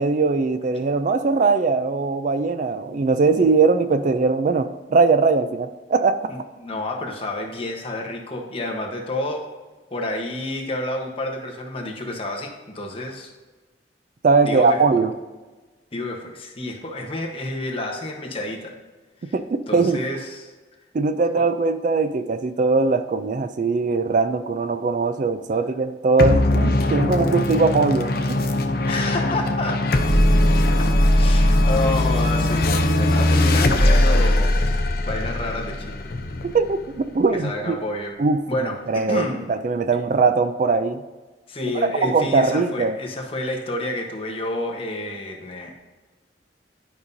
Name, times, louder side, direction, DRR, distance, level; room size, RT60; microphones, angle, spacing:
voice 1, 0.0-6.3 14.2-15.1 19.3-20.0 20.9-28.4 36.4-37.7 38.2-38.4 38.9-41.0 42.0-43.0, right 4 dB, 45° right, 11 dB, 0.3 m, -20 dB
voice 2, 6.3-9.5 9.9-13.3 14.4-14.8 15.9-18.7 19.2-19.3 19.7-20.5 21.4-21.5 28.8-30.1 30.8-30.9 31.1-34.5 35.0-36.1 37.3-38.2 38.5-39.4 41.5-45.7, left 1 dB, 30° left, 1 dB, 1.1 m, -29 dB
sound 1, 26.2-37.0, left 1 dB, 55° left, 0.7 m, -19 dB
11.5 x 5.4 x 2.7 m, 1.3 s
head